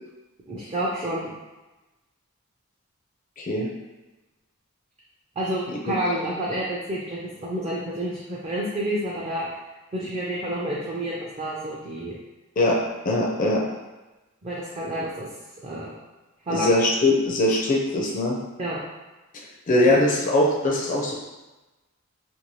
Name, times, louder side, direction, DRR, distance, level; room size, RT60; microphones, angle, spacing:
voice 1, 0.5-1.3 5.4-9.5 9.9-12.2 14.4-15.3 15.6-16.0 16.5-16.7 18.6-18.8, right 1 dB, 30° right, -5 dB, 0.4 m, -29 dB
voice 2, 3.4-3.7 5.9-6.0 12.6-12.8 13.1-13.6 16.5-18.4 19.7-21.1, left 1 dB, 40° left, -3 dB, 0.4 m, -21 dB
2.7 x 2.5 x 3.0 m, 1.1 s
head